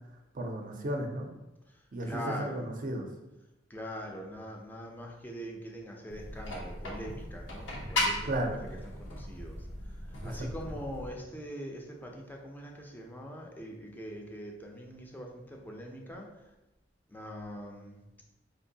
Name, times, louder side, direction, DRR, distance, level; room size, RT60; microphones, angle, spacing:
voice 1, 0.3-1.3 1.9-3.1 8.2-8.6 10.2-10.5, right 1 dB, 45° right, 3 dB, 0.5 m, -34 dB
voice 2, 2.0-2.6 3.7-8.4 8.8-9.6 10.2-16.3 17.1-18.0, equal, 10° left, 0 dB, 0.5 m, -42 dB
sound 1, 6.1-11.1, left 1 dB, 90° left, 0.8 m, -37 dB
4.4 x 2.6 x 2.7 m, 0.99 s
head